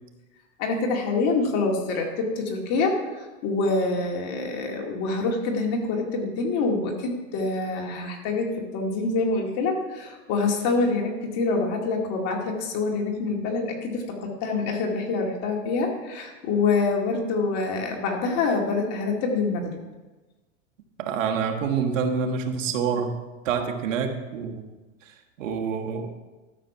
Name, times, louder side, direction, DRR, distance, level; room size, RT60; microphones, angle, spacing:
voice 1, 0.6-19.8, left 3 dB, 40° left, 1 dB, 2.2 m, -26 dB
voice 2, 21.0-23.2 23.4-24.6 25.4-26.1, right 6 dB, 80° right, 3 dB, 1.6 m, -27 dB
13.0 x 6.6 x 5.7 m, 1.2 s
supercardioid pair, 145°, 38 cm